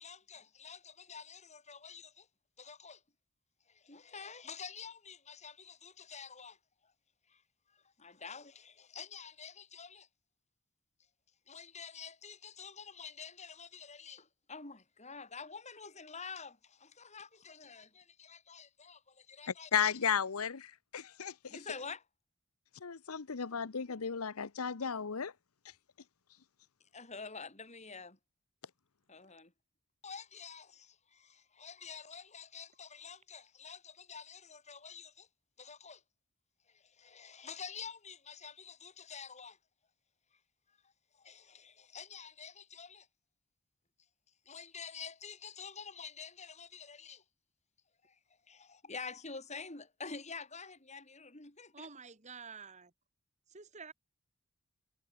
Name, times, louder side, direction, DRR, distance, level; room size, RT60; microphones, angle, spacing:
voice 1, 0.0-2.3 2.6-3.0 3.7-6.6 6.8-6.9 7.3-7.4 7.7-10.1 11.5-19.9 21.5-22.0 26.9-28.2 29.1-29.5 30.0-35.3 35.6-36.0 36.7-39.6 40.8-43.1 44.5-47.2 48.0-48.2 48.5-51.9, left 5 dB, 30° left, 5.2 m, -48 dB
voice 2, 19.5-21.6 22.8-25.3, left 7 dB, 85° left, 0.9 m, -34 dB
voice 3, 51.7-52.9 53.5-53.9, right 5 dB, 35° right, 1.9 m, -49 dB
head